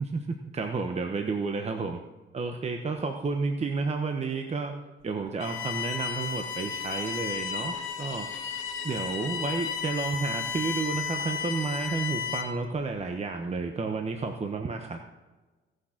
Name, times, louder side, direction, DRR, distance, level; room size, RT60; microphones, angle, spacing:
voice 1, 0.0-2.0 2.3-4.7 5.0-8.6 8.8-15.0, right 4 dB, 35° right, 4 dB, 1.0 m, -31 dB
Bowed string instrument, 5.4-12.6, left 7 dB, 80° left, 1.8 m, -33 dB
17.0 x 6.4 x 5.9 m, 1.2 s
cardioid pair, 90°, 20 cm